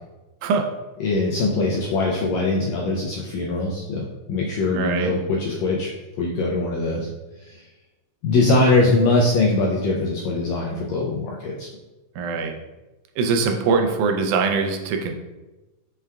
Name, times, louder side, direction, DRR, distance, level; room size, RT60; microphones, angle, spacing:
voice 1, 1.0-5.9 6.2-7.1 7.5-7.6 8.2-11.7, left 2 dB, 85° left, -3 dB, 1.6 m, -22 dB
voice 2, 4.8-5.1 12.2-12.5 13.2-15.1, right 4 dB, 85° right, 4 dB, 2.0 m, -22 dB
5.7 x 2.2 x 3.4 m, 1.1 s
omnidirectional pair, 3.6 m